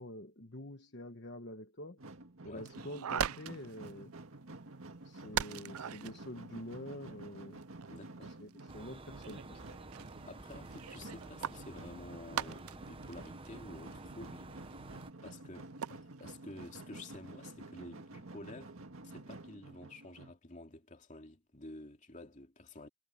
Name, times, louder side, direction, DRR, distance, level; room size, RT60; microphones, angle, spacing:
voice 1, 0.0-2.0 2.4-4.1 5.0-7.6 8.2-9.6, left 1 dB, 50° left, 1.4 m, -47 dB
sound 1, 2.0-20.3, right 2 dB, 70° right, 1.9 m, -51 dB
sound 2, 2.6-3.9 4.2-4.3 4.5-4.6 5.3-6.2 6.9-7.9 8.4-8.7 9.2-15.2 15.6-16.4 16.6-16.7 17.3-17.5, right 8 dB, 85° right, 0.5 m, -41 dB
voice 2, 7.9-8.3 10.3-14.5 14.8-14.9 15.2-18.8 19.0-22.9, left 2 dB, 35° left, 2.7 m, -51 dB
sound 3, 8.7-15.1, right 2 dB, 25° right, 0.9 m, -51 dB
head